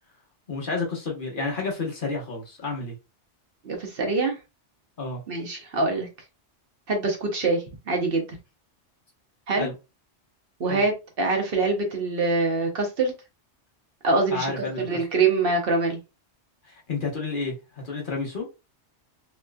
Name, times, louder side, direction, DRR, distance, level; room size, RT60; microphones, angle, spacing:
voice 1, 0.5-3.0 5.0-5.2 9.6-9.7 10.7-10.8 14.3-15.0 16.6-18.4, left 3 dB, 50° left, 1.0 m, -30 dB
voice 2, 3.6-4.4 5.3-6.1 6.9-8.2 9.5-9.7 10.6-13.1 14.0-16.0, right 3 dB, 55° right, 1.0 m, -24 dB
3.0 x 3.0 x 2.2 m
omnidirectional pair, 1.2 m